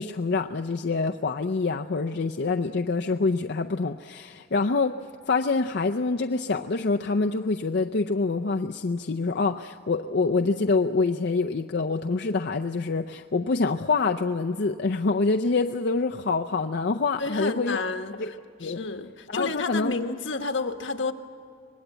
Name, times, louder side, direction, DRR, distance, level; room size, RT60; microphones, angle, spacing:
voice 1, 0.0-5.0 5.3-17.8 18.2-18.3 18.6-18.8 19.3-19.9, left 3 dB, 60° left, 3 dB, 0.6 m, -26 dB
voice 2, 17.2-18.4 18.6-21.1, left 3 dB, 80° left, 6 dB, 1.3 m, -30 dB
25.0 x 19.5 x 8.1 m, 2.4 s
head